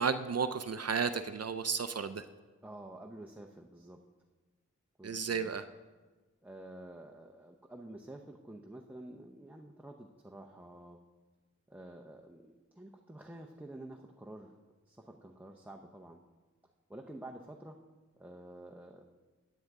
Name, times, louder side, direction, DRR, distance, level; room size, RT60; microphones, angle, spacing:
voice 1, 0.0-2.2 5.0-5.6, right 5 dB, 55° right, 10 dB, 0.5 m, -33 dB
voice 2, 2.6-4.0 5.0-5.5 6.4-11.0 11.7-14.5 14.9-16.2 16.9-17.8 18.2-19.0, right 1 dB, 5° right, 1 dB, 0.7 m, -49 dB
15.5 x 9.3 x 3.6 m, 1.3 s
wide cardioid pair, 85°, 30 cm